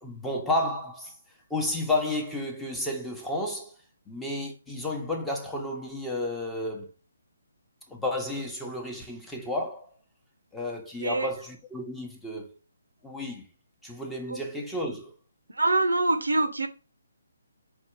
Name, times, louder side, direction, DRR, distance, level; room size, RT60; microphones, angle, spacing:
voice 1, 0.0-1.2 1.5-3.7 4.1-6.9 7.9-9.9 10.5-12.5 13.0-13.5 13.8-15.1, left 1 dB, 5° left, 0.8 m, -32 dB
voice 2, 15.6-16.7, right 2 dB, 85° right, 0.7 m, -24 dB
4.4 x 2.3 x 4.5 m
figure-of-eight pair, 145°, 0 cm